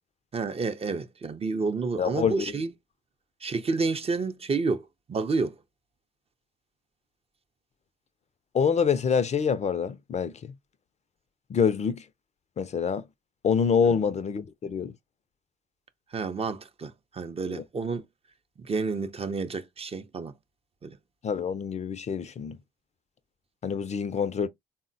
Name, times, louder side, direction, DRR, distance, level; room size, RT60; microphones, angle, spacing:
voice 1, 0.3-2.7 3.4-5.5 13.9-14.0 16.1-18.1 18.6-20.3 20.8-21.0, right 4 dB, 30° right, 0.5 m, -30 dB
voice 2, 2.0-2.5 8.5-10.3 11.5-12.0 12.6-13.0 13.4-14.9 17.5-17.6 21.2-22.6 23.6-24.5, left 6 dB, 35° left, 0.4 m, -26 dB
3.6 x 2.1 x 2.6 m
hypercardioid pair, 50°, 19 cm